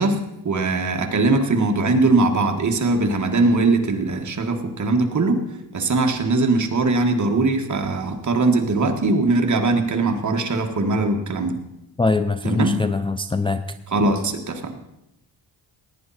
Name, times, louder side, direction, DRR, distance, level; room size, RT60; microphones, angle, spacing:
voice 1, 0.0-5.4 5.7-11.6 12.4-12.8 13.9-14.7, right 3 dB, 45° right, 4 dB, 1.7 m, -21 dB
voice 2, 12.0-13.6, left 3 dB, 15° left, 8 dB, 0.4 m, -22 dB
17.5 x 9.7 x 4.3 m, 0.86 s
cardioid pair, 110°, 41 cm